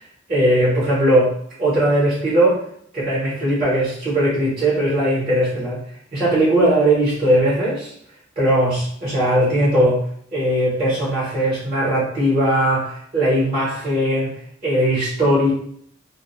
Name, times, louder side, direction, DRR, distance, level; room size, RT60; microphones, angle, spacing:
voice 1, 0.3-1.3 1.6-2.6 2.9-5.8 6.1-7.9 8.4-10.0 10.3-14.4 14.6-15.5, right 1 dB, 30° right, -8 dB, 0.9 m, -19 dB
2.2 x 2.1 x 3.0 m, 0.66 s
head